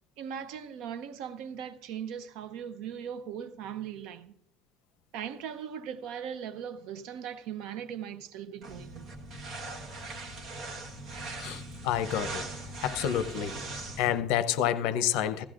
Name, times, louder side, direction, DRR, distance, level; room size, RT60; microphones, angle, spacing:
voice 1, 0.2-4.3 5.1-9.1, right 8 dB, 70° right, 0.7 m, -39 dB
sound 1, 8.6-14.2, right 2 dB, 40° right, 1.4 m, -40 dB
voice 2, 11.4-12.4 12.8-13.5 14.0-15.4, left 10 dB, 75° left, 0.6 m, -28 dB
16.0 x 14.0 x 2.5 m
cardioid pair, 155°, 0 cm